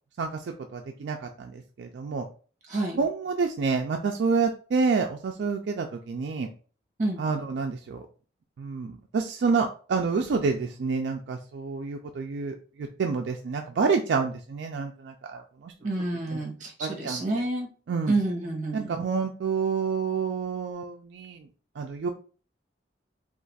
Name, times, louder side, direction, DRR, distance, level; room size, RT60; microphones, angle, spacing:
voice 1, 0.2-2.3 3.0-6.5 7.2-8.0 8.6-15.7 16.3-16.4 16.8-17.4 17.9-18.1 18.7-21.5 21.8-22.1, right 5 dB, 70° right, 3 dB, 0.3 m, -28 dB
voice 2, 2.7-3.0 7.0-7.2 15.8-17.7 18.1-18.9, right 2 dB, 40° right, 0 dB, 0.9 m, -28 dB
2.5 x 2.4 x 3.9 m, 0.39 s
head